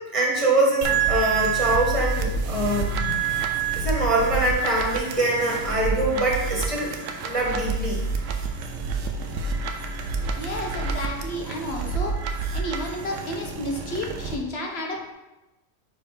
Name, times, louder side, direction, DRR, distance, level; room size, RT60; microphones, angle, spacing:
voice 1, 0.1-3.2 3.7-6.9 7.2-8.0, right 1 dB, 25° right, -3 dB, 1.6 m, -24 dB
sound 1, 0.8-14.4, right 5 dB, 70° right, 1.0 m, -28 dB
voice 2, 10.4-12.2 12.5-15.1, left 1 dB, 55° left, 1 dB, 1.2 m, -31 dB
4.9 x 4.7 x 5.1 m, 1.0 s
omnidirectional pair, 1.4 m